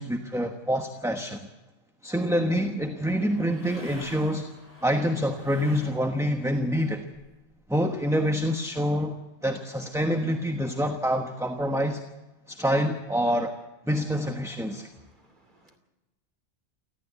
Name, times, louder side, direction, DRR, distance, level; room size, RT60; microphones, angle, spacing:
voice 1, 0.0-1.5 2.0-4.5 4.8-7.0 7.7-12.0 12.5-13.5 13.9-14.9, equal, 5° right, 5 dB, 1.1 m, -26 dB
sound 1, 3.1-6.4 6.7-8.0, equal, 35° left, 4.7 m, -49 dB
voice 2, 14.4-15.8, right 1 dB, 45° right, 6 dB, 2.9 m, -61 dB
28.5 x 13.0 x 8.3 m, 1.1 s
omnidirectional pair, 1.2 m